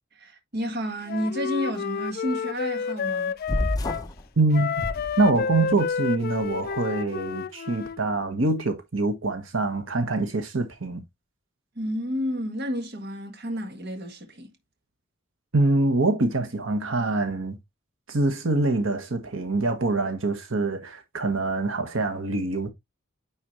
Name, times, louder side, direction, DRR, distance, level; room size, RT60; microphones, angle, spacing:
voice 1, 0.1-3.3 11.7-14.5, equal, 55° right, 1.6 m, -31 dB
Wind instrument woodwind instrument, 1.1-4.1 4.5-8.0, left 6 dB, 50° left, 0.4 m, -30 dB
sound 1, 3.5-4.2 4.8-5.7, left 1 dB, 20° left, 0.8 m, -29 dB
voice 2, 4.4-4.7 5.2-11.0 15.5-17.6 18.1-22.7, right 2 dB, 90° right, 1.5 m, -25 dB
9.5 x 4.3 x 3.2 m
head